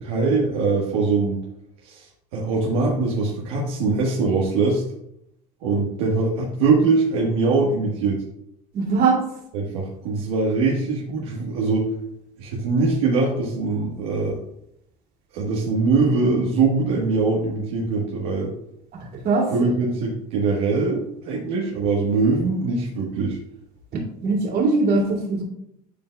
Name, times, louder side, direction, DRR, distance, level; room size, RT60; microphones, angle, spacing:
voice 1, 0.0-1.4 1.8-4.8 5.6-8.2 9.5-11.9 12.4-14.4 15.3-18.5 19.5-23.4, right 3 dB, 80° right, -3 dB, 1.5 m, -22 dB
voice 2, 8.7-9.1 19.2-19.5 24.2-25.4, right 3 dB, 55° right, -1 dB, 2.7 m, -20 dB
11.5 x 4.3 x 2.3 m, 0.76 s
supercardioid pair, 85°, 19 cm